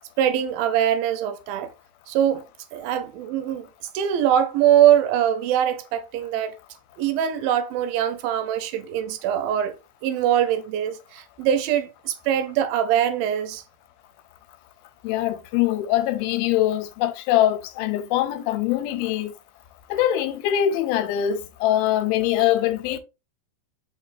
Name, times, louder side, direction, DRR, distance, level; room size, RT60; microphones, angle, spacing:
voice 1, 0.2-1.7 2.1-2.4 2.7-3.7 3.9-6.6 7.0-9.8 10.0-13.6, right 10 dB, 80° right, 2.3 m, -22 dB
voice 2, 15.0-19.3 19.9-23.0, left 12 dB, 85° left, 2.4 m, -23 dB
5.4 x 4.1 x 2.4 m
omnidirectional pair, 4.3 m